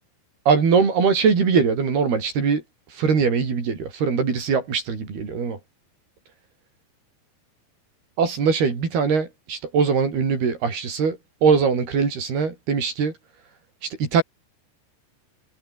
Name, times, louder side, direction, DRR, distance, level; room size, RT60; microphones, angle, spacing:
voice 1, 0.5-2.6 3.0-5.6 8.2-13.1 14.0-14.2, right 5 dB, 60° right, 7.1 m, -21 dB
omnidirectional pair, 5.2 m